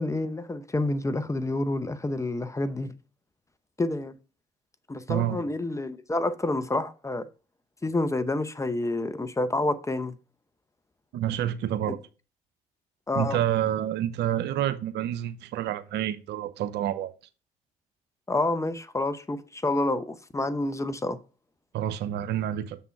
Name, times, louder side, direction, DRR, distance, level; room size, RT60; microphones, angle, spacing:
voice 1, 0.0-2.9 3.8-4.2 4.9-7.3 7.8-10.2 13.1-13.4 18.3-21.2, left 2 dB, 15° left, 0.8 m, -28 dB
voice 2, 5.1-5.5 11.1-12.0 13.1-17.1 21.7-22.8, right 11 dB, 65° right, 0.6 m, -28 dB
6.8 x 3.7 x 5.8 m
hypercardioid pair, 50°, 19 cm